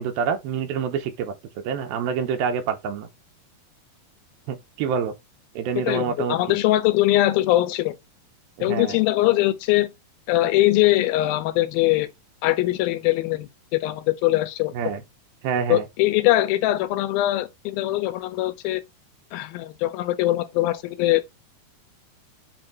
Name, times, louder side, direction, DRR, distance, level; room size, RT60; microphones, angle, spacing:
voice 1, 0.0-1.3 1.6-3.1 4.5-5.1 5.6-6.4 8.6-9.0 14.7-15.0 15.4-15.8, right 7 dB, 80° right, 2.8 m, -26 dB
voice 2, 5.8-8.0 8.6-9.9 10.3-12.1 12.4-15.0 15.7-18.8 19.3-21.2, left 16 dB, 80° left, 2.5 m, -22 dB
7.7 x 2.8 x 4.4 m
omnidirectional pair, 4.3 m